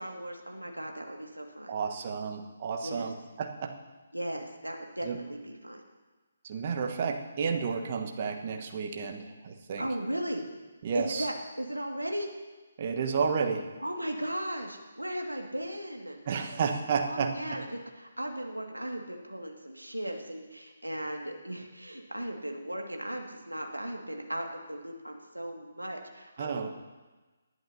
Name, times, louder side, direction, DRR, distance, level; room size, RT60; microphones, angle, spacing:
voice 1, 0.0-1.7 2.8-3.1 4.1-5.8 9.8-10.4 10.9-12.3 13.8-16.2 17.1-26.7, right 1 dB, 85° right, 2 dB, 2.0 m, -37 dB
voice 2, 1.7-3.7 5.0-5.2 6.4-9.9 10.8-11.3 12.8-13.7 16.3-17.6 26.4-26.7, right 5 dB, 35° right, 3 dB, 1.2 m, -31 dB
19.5 x 11.0 x 2.8 m, 1.2 s
figure-of-eight pair, 140°, 0 cm